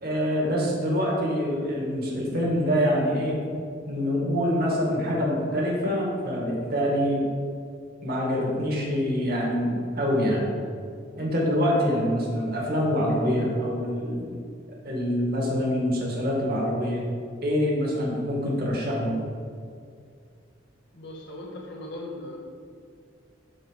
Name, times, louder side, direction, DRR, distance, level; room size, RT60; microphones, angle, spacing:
voice 1, 0.0-3.4 3.9-7.3 8.0-10.5 11.2-14.3 14.8-17.0 17.4-19.2, equal, 55° right, -3 dB, 2.0 m, -25 dB
voice 2, 20.9-22.4, left 1 dB, 65° left, -1 dB, 1.7 m, -38 dB
8.7 x 4.1 x 6.9 m, 2.3 s
head